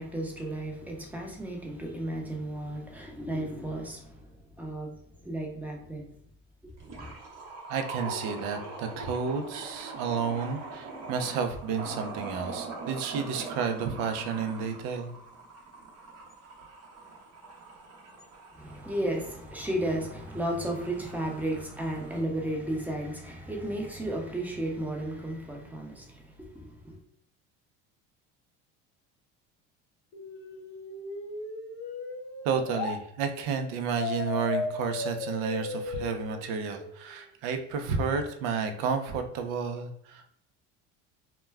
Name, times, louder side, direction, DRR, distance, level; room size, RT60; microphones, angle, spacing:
voice 1, 0.0-4.3 4.6-6.1 6.6-7.1 18.5-27.0, right 1 dB, 5° right, 0.6 m, -34 dB
sound 1, 6.8-22.2, right 3 dB, 50° right, 0.8 m, -42 dB
voice 2, 7.7-15.1 32.4-40.3, right 6 dB, 80° right, 0.5 m, -31 dB
sound 2, 30.1-32.9 34.0-37.0, left 4 dB, 60° left, 1.0 m, -36 dB
2.2 x 2.1 x 3.3 m
supercardioid pair, 105°, 32 cm